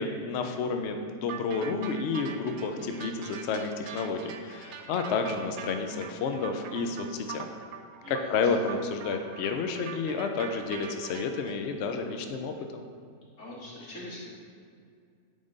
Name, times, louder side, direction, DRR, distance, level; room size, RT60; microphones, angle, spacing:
voice 1, 0.0-7.5 8.1-12.8, left 4 dB, 80° left, 5 dB, 0.6 m, -30 dB
sound 1, 1.3-11.6, right 8 dB, 90° right, 1.1 m, -43 dB
voice 2, 8.0-8.7 13.4-14.3, left 1 dB, 55° left, -5 dB, 1.8 m, -43 dB
8.7 x 3.7 x 3.9 m, 2.3 s
omnidirectional pair, 1.7 m